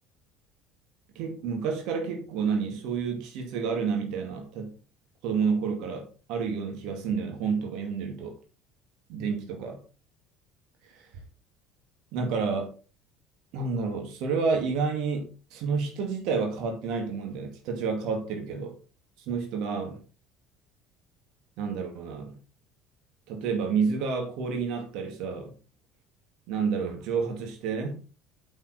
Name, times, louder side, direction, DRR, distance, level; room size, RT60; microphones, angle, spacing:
voice 1, 1.2-4.7 5.2-8.3 9.1-9.8 10.9-11.1 12.1-12.8 13.5-18.7 19.3-20.0 21.6-22.4 23.3-25.5 26.5-28.0, right 5 dB, 55° right, 2.3 m, -30 dB
8.9 x 7.0 x 4.2 m
figure-of-eight pair, 60°, 0 cm